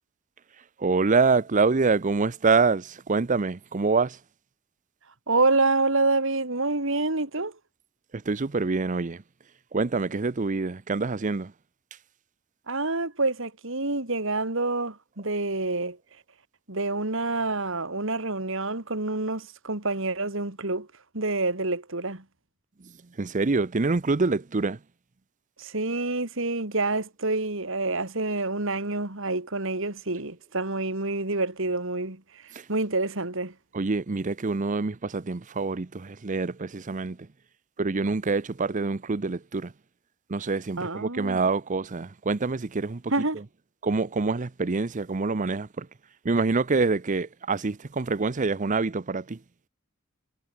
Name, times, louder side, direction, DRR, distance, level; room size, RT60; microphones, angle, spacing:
voice 1, 0.8-4.2 8.1-9.2 9.7-11.5 22.8-22.9 23.2-24.8 32.5-32.7 33.7-37.2 37.8-39.7 40.3-43.0 43.8-45.9 46.2-49.4, right 4 dB, 35° right, 0.7 m, -26 dB
voice 2, 5.3-7.6 12.7-16.0 16.7-20.9 21.1-22.2 25.6-32.4 32.7-33.5 40.7-41.4 43.1-43.4, right 3 dB, 65° right, 3.1 m, -27 dB
head